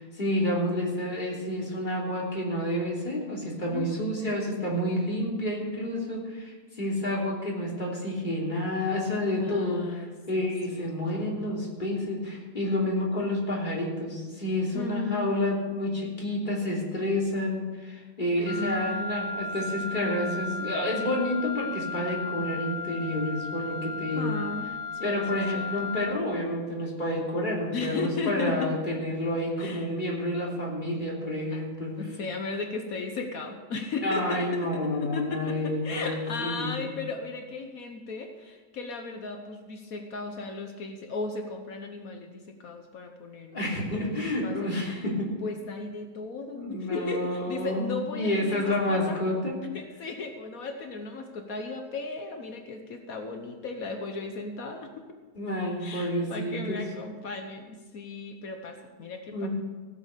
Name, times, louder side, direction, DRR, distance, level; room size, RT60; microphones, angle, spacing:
voice 1, 0.0-24.3 25.0-32.0 34.0-36.9 43.5-45.3 46.5-49.6 55.3-56.8 59.3-59.5, left 1 dB, 30° left, -4 dB, 3.4 m, -29 dB
voice 2, 3.7-4.0 9.3-11.4 14.7-15.3 18.4-19.4 19.8-21.2 24.1-25.9 27.7-29.0 29.6-29.9 31.5-31.6 32.0-44.1 44.4-45.0 45.4-49.2 49.7-55.1 55.8-59.5, left 4 dB, 65° left, 5 dB, 1.5 m, -36 dB
Wind instrument woodwind instrument, 18.5-26.2, left 3 dB, 50° left, 0.6 m, -35 dB
16.5 x 7.6 x 6.7 m, 1.3 s
omnidirectional pair, 1.6 m